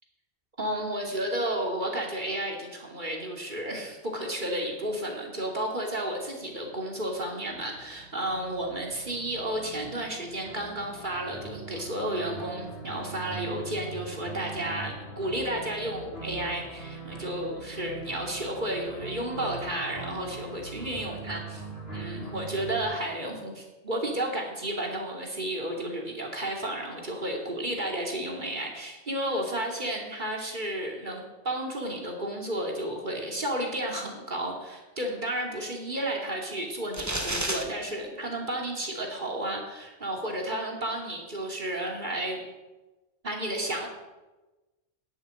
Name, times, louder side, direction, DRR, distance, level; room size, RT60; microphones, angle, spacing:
voice 1, 0.6-21.6 21.9-42.4 43.2-43.9, right 1 dB, 45° right, 0 dB, 3.0 m, -32 dB
sound 1, 6.4-22.8, right 3 dB, 60° left, 5.0 m, -42 dB
sound 2, 36.9-37.6, right 1 dB, 15° right, 1.7 m, -30 dB
10.5 x 9.9 x 9.2 m, 1.1 s
omnidirectional pair, 1.1 m